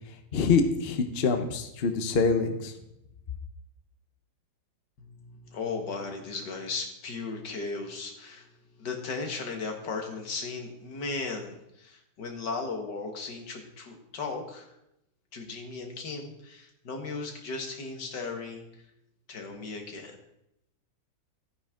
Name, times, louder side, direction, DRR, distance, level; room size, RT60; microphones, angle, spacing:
voice 1, 0.3-2.7, left 4 dB, 40° left, 7 dB, 1.0 m, -25 dB
voice 2, 5.0-8.5 8.8-14.7 15.3-18.7 19.3-20.2, left 4 dB, 80° left, 3 dB, 2.3 m, -36 dB
13.5 x 9.8 x 3.7 m, 0.84 s
omnidirectional pair, 1.8 m